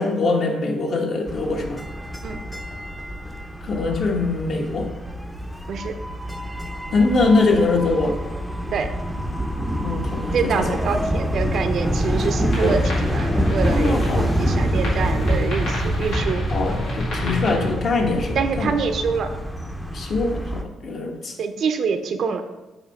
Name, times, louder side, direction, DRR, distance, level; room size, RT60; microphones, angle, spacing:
voice 1, 0.0-1.8 3.6-4.9 6.9-8.2 9.8-10.7 12.6-12.7 13.7-14.3 16.5-18.7 19.9-21.3, left 3 dB, 55° left, 1 dB, 1.1 m, -22 dB
sound 1, 1.3-20.6, equal, ahead, 0.6 m, -26 dB
voice 2, 10.3-12.8 13.1-16.4 18.3-19.3 21.4-22.4, right 5 dB, 65° right, 7 dB, 0.6 m, -25 dB
sound 2, 12.5-17.7, left 2 dB, 90° left, 2.2 m, -33 dB
7.1 x 2.8 x 5.4 m, 1.1 s
cardioid pair, 90°, 0 cm